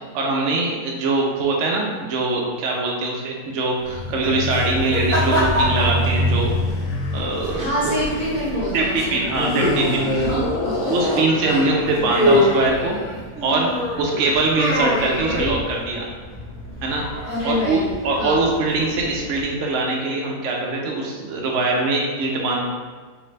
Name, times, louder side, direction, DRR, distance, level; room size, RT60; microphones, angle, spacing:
voice 1, 0.1-6.5 7.1-7.9 8.7-10.3 10.9-13.0 13.4-13.7 14.0-16.1 16.8-17.1 17.4-22.6, right 2 dB, 65° right, -1 dB, 0.7 m, -22 dB
sound 1, 3.8-8.7 9.3-11.5, left 1 dB, 70° left, 1.1 m, -25 dB
sound 2, 3.8-19.4, left 1 dB, 15° right, 0.4 m, -26 dB
voice 2, 7.5-9.3 10.1-10.9 11.5-11.6 17.3-17.9 18.2-18.4, equal, 35° left, -11 dB, 0.8 m, -26 dB
3.3 x 2.1 x 3.1 m, 1.4 s
omnidirectional pair, 1.8 m